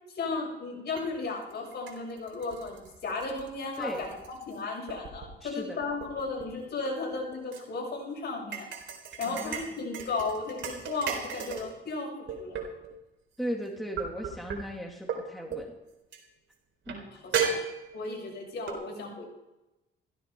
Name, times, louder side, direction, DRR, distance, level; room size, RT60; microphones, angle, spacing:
voice 1, 0.1-8.7 9.2-12.6 16.9-17.6 17.9-19.2, left 3 dB, 55° left, -1 dB, 6.8 m, -35 dB
sound 1, 1.0-1.1 1.5-4.6 4.9-5.4 5.8-7.6 8.5-11.7 12.3-13.0 14.0-14.6 15.1-15.2 15.5-15.7 16.1-16.2 16.9-17.0 17.3-18.2 18.7-18.8, right 6 dB, 70° right, 3.9 m, -35 dB
voice 2, 5.4-5.8 9.3-9.6 13.4-15.7 16.9-17.0, equal, ahead, 0 dB, 2.4 m, -36 dB
16.0 x 15.0 x 4.6 m, 0.99 s
cardioid pair, 90°, 20 cm